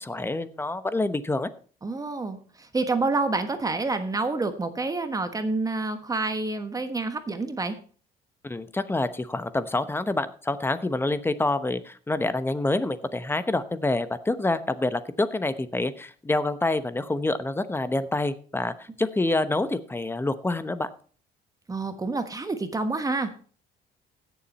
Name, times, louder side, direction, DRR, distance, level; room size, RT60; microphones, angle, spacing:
voice 1, 0.0-1.5 8.4-20.9, left 2 dB, 15° left, 13 dB, 1.0 m, -27 dB
voice 2, 1.8-7.8 21.7-23.3, right 3 dB, 20° right, 9 dB, 1.3 m, -28 dB
16.0 x 7.3 x 4.2 m, 0.41 s
cardioid pair, 110°, 17 cm